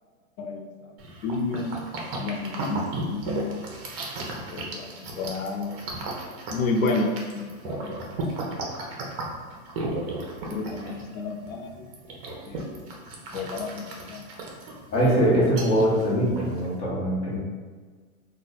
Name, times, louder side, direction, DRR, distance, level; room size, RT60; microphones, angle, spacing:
voice 1, 0.4-0.9 1.2-1.9 2.2-3.6 4.5-5.8 6.5-8.0 8.3-8.4 10.5-11.9 12.5-12.8 13.3-14.3, left 3 dB, 70° left, 2 dB, 0.6 m, -31 dB
sound 1, 1.0-16.8, right 2 dB, 45° right, 0.7 m, -35 dB
voice 2, 14.9-17.4, equal, 25° left, -6 dB, 0.8 m, -22 dB
2.4 x 2.3 x 4.0 m, 1.5 s
hypercardioid pair, 140°, 42 cm